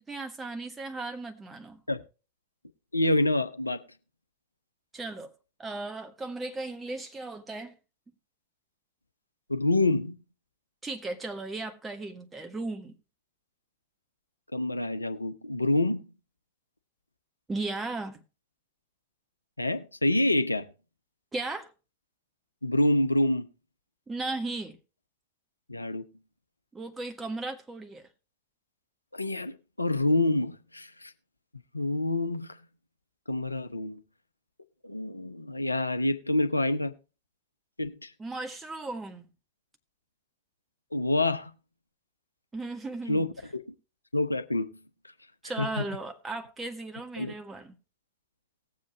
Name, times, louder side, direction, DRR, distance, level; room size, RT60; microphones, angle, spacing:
voice 1, 0.0-1.8 4.9-5.3 5.6-7.7 10.8-12.9 17.5-18.2 21.3-21.7 24.1-24.8 26.7-28.0 38.2-39.3 42.5-43.2 45.4-47.7, right 2 dB, 15° right, 1.4 m, -36 dB
voice 2, 2.9-3.8 9.5-10.2 14.5-16.1 19.6-20.7 22.6-23.5 25.7-26.1 29.1-31.1 31.7-32.6 33.3-34.0 34.8-37.0 37.8-38.1 40.9-41.5 43.1-43.6 44.1-44.7 45.6-45.9 47.2-47.3, left 1 dB, 85° left, 0.7 m, -27 dB
18.5 x 7.5 x 3.0 m
figure-of-eight pair, 90°, 0 cm